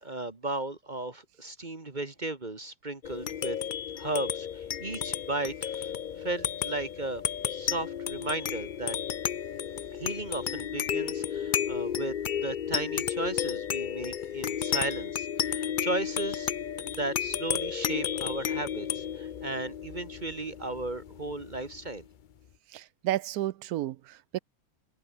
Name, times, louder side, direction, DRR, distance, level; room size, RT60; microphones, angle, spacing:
voice 1, 0.0-3.6 4.0-5.9 6.2-7.2 7.5-9.0 9.9-16.5 16.8-22.0, right 2 dB, 30° right, 1.7 m, -35 dB
sound 1, 3.0-21.9, left 9 dB, 75° left, 0.4 m, -33 dB
voice 2, 22.7-24.4, right 14 dB, 75° right, 1.1 m, -32 dB
omnidirectional pair, 1.7 m